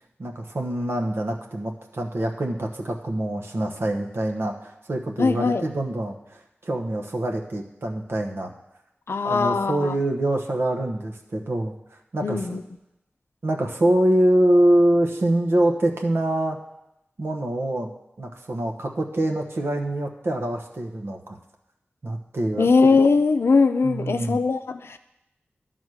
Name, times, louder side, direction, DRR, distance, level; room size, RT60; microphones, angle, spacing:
voice 1, 0.2-8.5 9.2-11.7 12.1-12.6 13.4-16.6 17.2-17.9 18.2-21.4 22.0-22.7 23.8-24.4, right 1 dB, 70° right, 2 dB, 1.1 m, -24 dB
voice 2, 5.2-5.6 9.1-10.0 12.2-12.6 22.6-25.0, left 4 dB, 75° left, 9 dB, 0.5 m, -20 dB
10.5 x 4.1 x 6.3 m, 0.88 s
cardioid pair, 40°, 4 cm